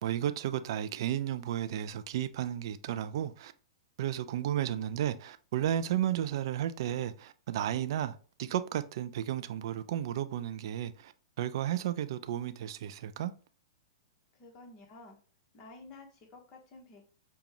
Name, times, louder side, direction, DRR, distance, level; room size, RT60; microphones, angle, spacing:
voice 1, 0.0-3.5 4.0-11.1 11.4-13.3, right 11 dB, 60° right, 0.4 m, -33 dB
voice 2, 14.3-15.2 15.5-17.0, left 3 dB, 35° left, 1.2 m, -52 dB
5.1 x 2.3 x 2.9 m
hypercardioid pair, 110°, 3 cm